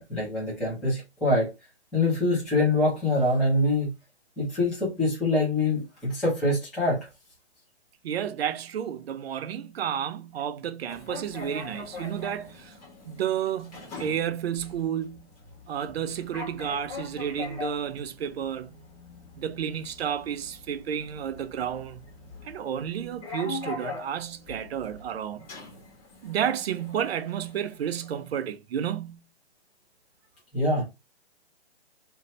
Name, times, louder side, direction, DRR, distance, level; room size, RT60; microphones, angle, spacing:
voice 1, 0.0-1.5 1.9-3.9 4.4-7.0 30.5-30.8, left 2 dB, ahead, 0.5 m, -24 dB
voice 2, 8.0-12.7 13.1-15.3 15.7-18.7 19.4-22.0 22.4-25.5 26.2-29.2, right 9 dB, 65° right, 0.6 m, -31 dB
sound 1, 10.9-28.4, left 4 dB, 35° left, 1.2 m, -43 dB
2.6 x 2.2 x 3.9 m
hypercardioid pair, 160°, 33 cm